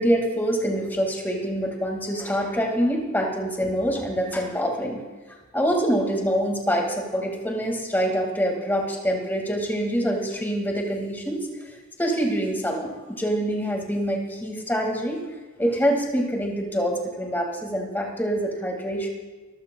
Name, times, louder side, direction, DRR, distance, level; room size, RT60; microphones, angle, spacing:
voice 1, 0.0-5.0 5.5-11.5 12.0-15.2 15.6-19.1, equal, 10° left, 0 dB, 1.9 m, -25 dB
26.0 x 14.0 x 2.2 m, 1.3 s
head